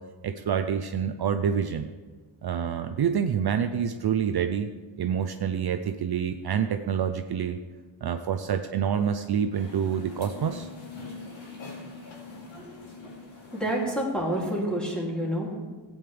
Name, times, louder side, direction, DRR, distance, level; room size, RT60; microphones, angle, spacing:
voice 1, 0.2-1.9 2.4-4.7 5.0-7.6 8.0-10.7, right 8 dB, 55° right, 7 dB, 0.6 m, -27 dB
sound 1, 9.5-14.7, left 3 dB, 75° left, 2.9 m, -43 dB
voice 2, 13.6-15.6, right 1 dB, ahead, -4 dB, 2.8 m, -28 dB
16.0 x 8.9 x 3.4 m, 1.3 s
wide cardioid pair, 145°, 46 cm